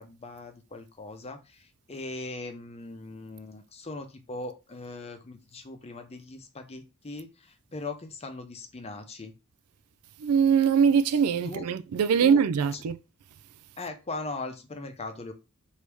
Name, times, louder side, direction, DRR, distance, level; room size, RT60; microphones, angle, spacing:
voice 1, 0.0-9.3 11.5-11.7 12.2-12.5 12.7-12.8 13.8-15.3, left 3 dB, 30° left, 0.6 m, -39 dB
voice 2, 10.2-13.0, right 7 dB, 80° right, 0.4 m, -22 dB
4.7 x 2.7 x 3.4 m
head